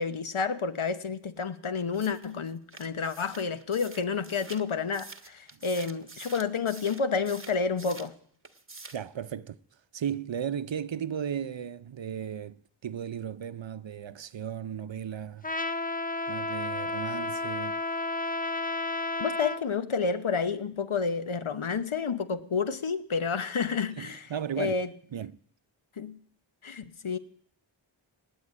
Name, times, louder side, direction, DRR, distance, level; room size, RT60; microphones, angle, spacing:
voice 1, 0.0-8.1 19.2-24.3 24.6-24.9 26.0-26.2 26.6-27.2, left 5 dB, 75° left, 1.1 m, -30 dB
sound 1, 1.9-8.2 8.4-9.1, right 3 dB, 25° right, 1.2 m, -47 dB
voice 2, 8.9-9.6 9.9-15.5 16.3-17.8 24.0-24.7 25.1-25.4, right 8 dB, 65° right, 0.7 m, -35 dB
Trumpet, 15.4-19.6, left 2 dB, 20° left, 0.7 m, -32 dB
18.0 x 8.7 x 8.7 m
wide cardioid pair, 50°, 49 cm